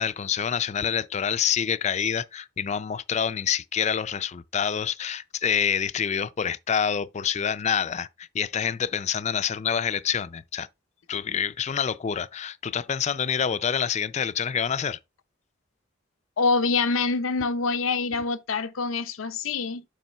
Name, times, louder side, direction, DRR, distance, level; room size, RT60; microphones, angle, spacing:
voice 1, 0.0-10.7 11.1-15.0, left 7 dB, 35° left, 0.4 m, -27 dB
voice 2, 16.4-19.8, left 4 dB, 90° left, 0.7 m, -25 dB
7.3 x 3.0 x 5.5 m
head